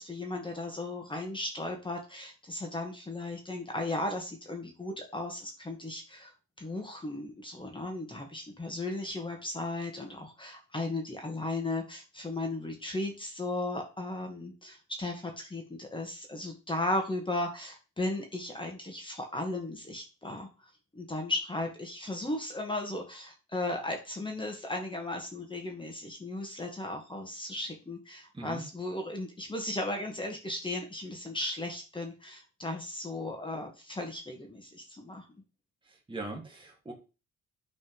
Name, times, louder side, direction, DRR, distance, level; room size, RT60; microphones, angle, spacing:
voice 1, 0.0-6.3 6.6-35.3, left 2 dB, 15° left, 2 dB, 1.9 m, -36 dB
voice 2, 36.1-36.9, right 2 dB, 15° right, -1 dB, 2.7 m, -40 dB
9.1 x 4.2 x 5.5 m, 0.32 s
cardioid pair, 90°, 30 cm